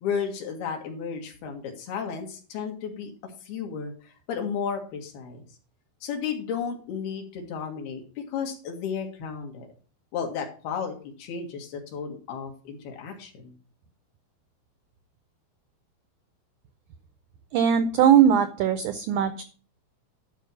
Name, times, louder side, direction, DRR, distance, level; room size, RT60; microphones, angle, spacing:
voice 1, 0.0-3.1 3.4-5.4 6.0-8.0 8.3-9.7 10.1-13.6, left 6 dB, 80° left, 2 dB, 3.7 m, -33 dB
voice 2, 17.5-19.4, right 8 dB, 85° right, 10 dB, 1.7 m, -20 dB
12.0 x 4.6 x 7.0 m, 0.39 s
omnidirectional pair, 4.4 m